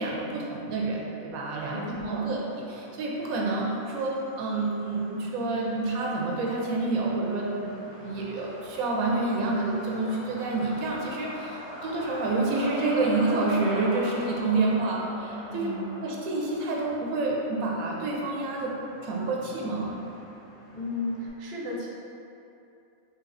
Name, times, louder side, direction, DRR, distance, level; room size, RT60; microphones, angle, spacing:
voice 1, 0.0-18.8 19.0-20.0, right 3 dB, 85° right, -2 dB, 1.0 m, -28 dB
Truck, 1.3-21.3, equal, 55° left, 1.2 m, -43 dB
voice 2, 1.7-2.3 15.5-16.0 20.7-21.9, left 2 dB, 60° right, -3 dB, 0.7 m, -34 dB
4.0 x 2.7 x 2.5 m, 2.7 s
omnidirectional pair, 1.4 m